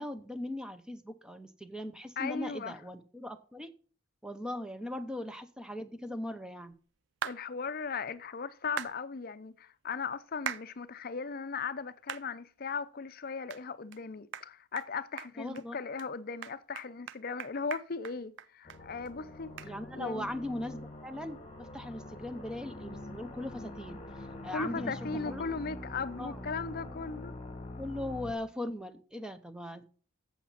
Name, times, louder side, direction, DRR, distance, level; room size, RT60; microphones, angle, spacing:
voice 1, 0.0-3.7 4.2-6.7 15.4-15.8 19.6-25.0 25.3-25.4 26.2-26.4 27.8-29.9, left 1 dB, 5° right, 0.7 m, -39 dB
voice 2, 2.2-2.8 7.2-20.3 24.5-27.3, left 5 dB, 45° left, 0.5 m, -38 dB
sound 1, 7.2-7.4 8.8-8.9 10.5-10.7 11.2-11.3 12.1-12.3 12.7-12.8 13.5-13.6 13.9-14.0 14.3-14.5 14.8-14.9 15.2-15.6 16.0-16.1 16.4-18.8 19.1-19.2 19.6-19.7, right 9 dB, 55° right, 0.4 m, -39 dB
sound 2, 18.6-28.3, left 1 dB, 30° left, 1.3 m, -44 dB
8.4 x 7.2 x 5.7 m
head